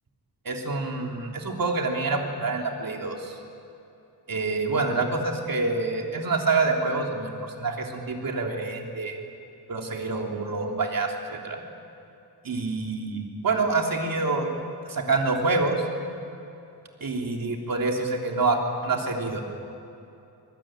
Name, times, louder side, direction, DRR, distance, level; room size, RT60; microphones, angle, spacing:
voice 1, 0.4-3.4 4.3-9.2 9.7-11.6 12.4-14.5 14.8-15.8 17.0-19.4, right 3 dB, 55° right, 1 dB, 3.4 m, -27 dB
24.5 x 20.0 x 9.1 m, 2.7 s
wide cardioid pair, 115°, 41 cm